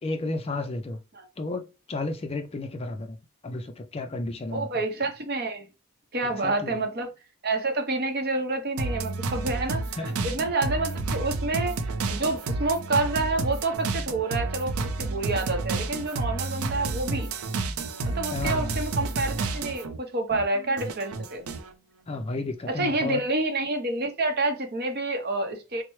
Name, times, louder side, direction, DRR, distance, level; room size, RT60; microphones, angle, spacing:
voice 1, 0.0-1.0 1.4-3.2 3.4-4.7 6.4-6.8 10.0-10.1 18.3-18.8 22.1-23.2, left 2 dB, 30° left, 0.4 m, -32 dB
voice 2, 4.5-5.7 6.1-7.1 7.4-17.3 18.0-21.4 22.7-25.8, right 2 dB, 45° right, 0.7 m, -28 dB
sound 1, 8.8-20.0 20.3-21.7, right 3 dB, 80° right, 0.5 m, -30 dB
4.3 x 2.0 x 3.0 m
head